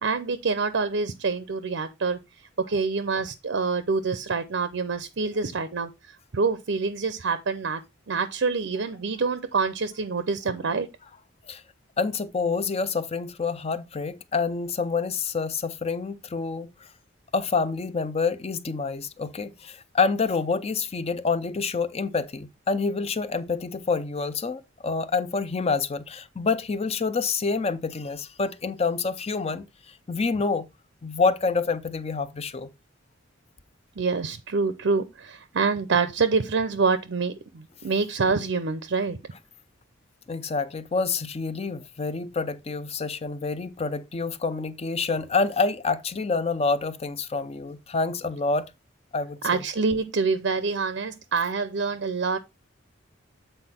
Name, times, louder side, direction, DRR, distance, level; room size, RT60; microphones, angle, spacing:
voice 1, 0.0-2.2 2.7-5.9 6.3-7.8 8.1-10.9 34.0-39.2 49.4-52.4, right 4 dB, 60° right, 0.6 m, -26 dB
voice 2, 12.0-16.7 17.3-30.7 31.0-32.7 40.3-48.7 49.1-49.7, left 4 dB, 30° left, 0.5 m, -27 dB
7.9 x 4.2 x 4.2 m
head